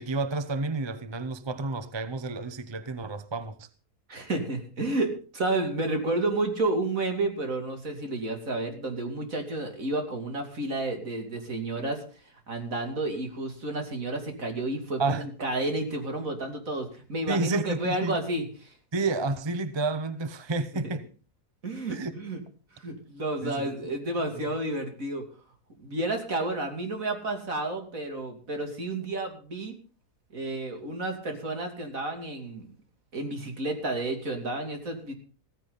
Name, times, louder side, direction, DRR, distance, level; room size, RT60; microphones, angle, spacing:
voice 1, 0.0-3.7 15.0-15.3 17.3-18.1 18.9-21.1 21.9-22.1 23.4-23.9 24.3-24.5, right 3 dB, 20° right, 0.7 m, -30 dB
voice 2, 4.1-18.7 21.6-22.4 22.7-25.3 25.8-29.7 30.3-32.7 33.1-35.1, right 2 dB, 60° right, 3.3 m, -31 dB
16.0 x 15.0 x 4.0 m
omnidirectional pair, 1.6 m